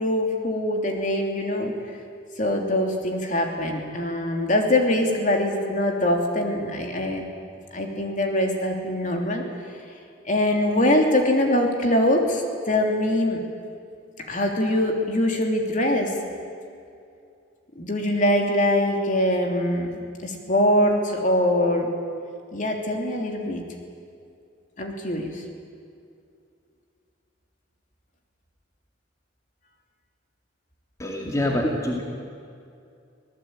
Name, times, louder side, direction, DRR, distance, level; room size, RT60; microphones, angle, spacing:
voice 1, 0.0-1.8 2.4-7.3 7.7-9.4 10.2-13.4 14.2-16.2 17.7-19.9 20.2-21.9 22.5-23.6 24.8-25.4, left 1 dB, 40° left, 2 dB, 3.1 m, -23 dB
voice 2, 31.0-32.0, left 1 dB, 15° left, -1 dB, 2.3 m, -25 dB
25.5 x 17.5 x 8.9 m, 2.5 s
head